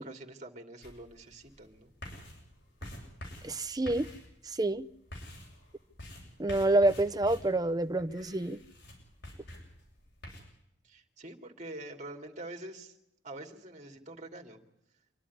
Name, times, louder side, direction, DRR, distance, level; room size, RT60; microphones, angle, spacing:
voice 1, 0.0-1.9 10.8-13.0 13.2-14.6, right 1 dB, 40° right, 2.5 m, -45 dB
sound 1, 0.8-10.4, left 1 dB, 70° left, 7.8 m, -48 dB
voice 2, 3.4-4.1 4.4-4.9 6.4-8.6, right 2 dB, 20° right, 0.7 m, -27 dB
27.0 x 11.5 x 9.7 m
head